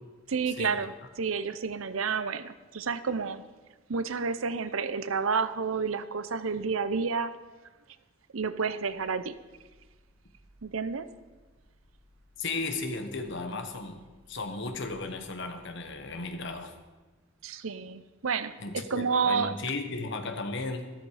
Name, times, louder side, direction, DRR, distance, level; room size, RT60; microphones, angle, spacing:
voice 1, 0.3-3.4 3.9-7.3 8.3-9.3 10.6-11.1 17.4-19.6, right 5 dB, 85° right, 13 dB, 0.7 m, -30 dB
sound 1, 8.9-16.4, equal, 25° right, 2.2 m, -61 dB
voice 2, 12.4-14.0 14.3-16.7 18.6-20.9, left 3 dB, 60° left, 6 dB, 1.4 m, -35 dB
13.0 x 13.0 x 5.0 m, 1.3 s
head